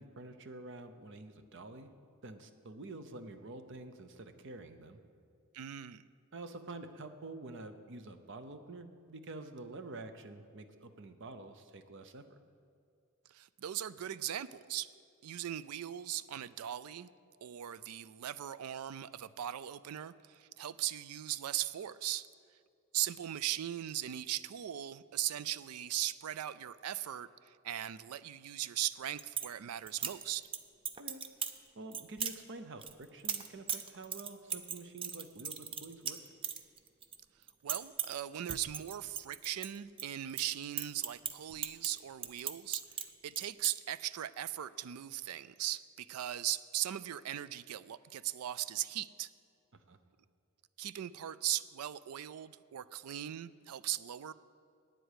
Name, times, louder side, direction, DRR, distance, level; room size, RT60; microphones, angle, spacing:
voice 1, 0.0-1.9 2.2-5.0 6.3-12.4 31.0-31.2 31.7-36.2 49.7-50.0, right 2 dB, 55° right, 9 dB, 0.7 m, -48 dB
voice 2, 5.5-6.0 13.3-14.9 15.2-17.1 17.4-22.3 22.9-30.5 37.6-49.3 50.8-54.3, right 12 dB, 90° right, 17 dB, 0.4 m, -39 dB
sound 1, 28.9-29.5 29.9-30.6 30.8-31.6 31.9-32.4 32.8-37.2 37.4-38.2 38.5-40.0 40.3-43.0 43.3-43.7, right 7 dB, 25° right, 0.5 m, -38 dB
9.2 x 7.8 x 8.3 m, 2.4 s
head